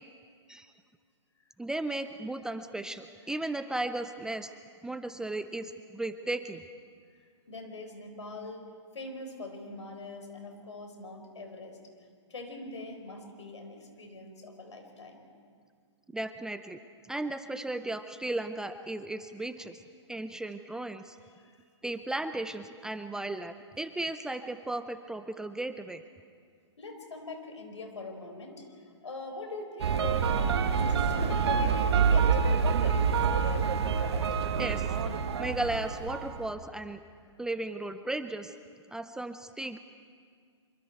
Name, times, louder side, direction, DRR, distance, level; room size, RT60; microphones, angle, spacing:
voice 1, 1.6-4.5 4.8-6.6 16.1-16.8 17.1-19.8 20.1-21.2 21.8-26.0 34.6-34.9 35.4-37.0 37.4-38.5 38.9-39.8, right 2 dB, 5° right, 10 dB, 0.5 m, -35 dB
voice 2, 7.5-11.8 12.3-15.2 21.3-21.5 26.8-33.7, left 2 dB, 80° left, 4 dB, 4.4 m, -43 dB
sound 1, 29.8-36.5, right 6 dB, 60° right, 1.5 m, -27 dB
25.5 x 24.0 x 4.6 m, 2.1 s
hypercardioid pair, 125°, 15 cm